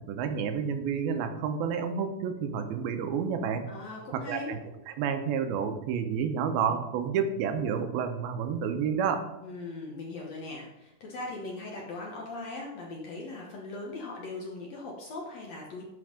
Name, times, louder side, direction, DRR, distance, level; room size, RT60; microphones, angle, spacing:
voice 1, 0.1-3.7 4.3-4.6 4.9-9.2, right 7 dB, 85° right, 7 dB, 2.7 m, -30 dB
voice 2, 3.7-4.5 9.4-15.8, left 2 dB, 65° left, -1 dB, 1.8 m, -39 dB
11.0 x 4.4 x 5.0 m, 0.95 s
omnidirectional pair, 4.2 m